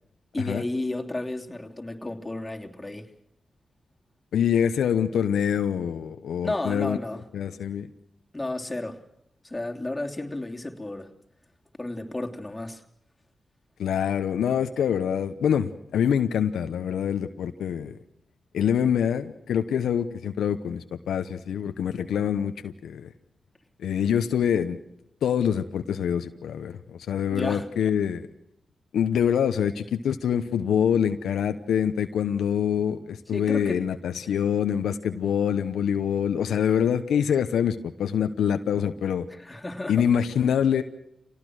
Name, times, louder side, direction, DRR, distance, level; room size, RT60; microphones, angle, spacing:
voice 1, 0.3-3.1 6.4-7.2 8.3-9.0 9.4-11.1 11.8-12.8 27.3-27.7 33.3-33.8 39.3-40.1, left 2 dB, 20° left, 2 dB, 3.1 m, -32 dB
voice 2, 4.3-7.0 7.3-7.9 13.8-17.9 18.5-23.1 23.8-24.8 25.2-28.3 28.9-39.2 39.9-40.8, left 8 dB, 90° left, 8 dB, 0.9 m, -25 dB
26.5 x 18.5 x 6.3 m, 0.76 s
supercardioid pair, 45°, 0 cm